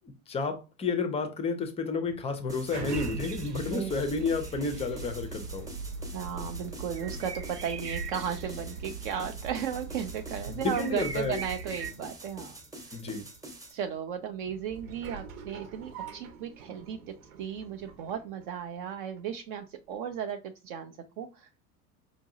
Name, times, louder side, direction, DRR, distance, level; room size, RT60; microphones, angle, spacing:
voice 1, 0.0-5.7 10.5-11.4 12.9-13.3, left 4 dB, 15° left, 0.5 m, -31 dB
sound 1, 2.0-19.4 19.9-20.0, right 4 dB, 60° right, 1.0 m, -47 dB
sound 2, 2.5-13.8, right 1 dB, 5° right, 0.9 m, -46 dB
sound 3, 2.9-11.9, right 4 dB, 90° right, 0.6 m, -40 dB
voice 2, 6.1-12.6 12.9-13.0 13.7-21.6, right 8 dB, 35° right, 0.4 m, -35 dB
4.9 x 2.6 x 2.6 m
figure-of-eight pair, 80°, 46 cm